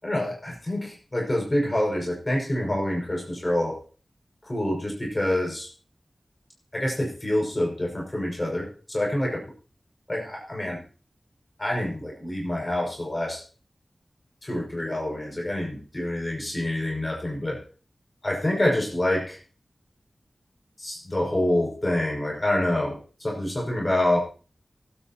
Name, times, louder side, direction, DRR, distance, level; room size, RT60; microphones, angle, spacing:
voice 1, 0.0-3.8 4.5-5.7 6.7-9.4 10.1-10.8 11.6-13.4 14.4-17.6 18.2-19.4 20.8-24.2, left 1 dB, 30° left, -1 dB, 6.0 m, -27 dB
24.5 x 8.9 x 3.0 m, 0.37 s
wide cardioid pair, 75°, 0 cm